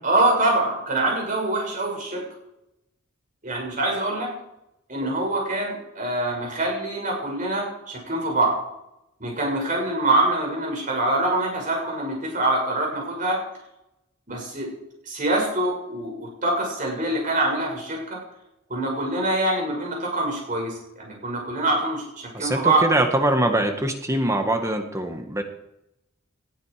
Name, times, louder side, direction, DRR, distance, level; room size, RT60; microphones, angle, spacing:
voice 1, 0.0-2.2 3.4-4.3 4.9-8.6 9.2-13.4 14.3-14.7 15.1-18.2 18.7-22.8, right 2 dB, 40° right, -1 dB, 6.9 m, -24 dB
voice 2, 22.3-25.4, right 1 dB, 15° right, 5 dB, 1.5 m, -23 dB
20.0 x 12.0 x 5.0 m, 0.85 s
head